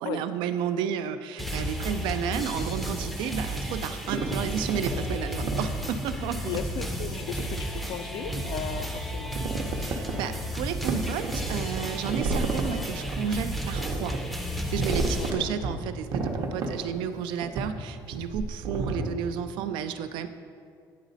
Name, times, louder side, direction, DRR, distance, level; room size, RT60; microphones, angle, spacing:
voice 1, 0.0-6.6 9.8-14.2 14.5-20.3, right 8 dB, 85° right, 10 dB, 0.4 m, -32 dB
sound 1, 1.4-15.3, equal, ahead, 0.5 m, -33 dB
sound 2, 4.0-5.0 5.5-5.7 6.1-6.2 7.0-7.4 7.9-8.5 8.8-8.9 9.2-10.2 10.6-10.7 10.9-12.7 13.1-14.3 14.8-15.8 16.1-17.1 17.4-17.7 18.1-19.1, right 3 dB, 50° right, 0.7 m, -31 dB
voice 2, 6.5-9.4 15.1-15.4, left 9 dB, 65° left, 10 dB, 0.4 m, -36 dB
9.3 x 4.0 x 3.9 m, 2.3 s
cardioid pair, 170°, 8 cm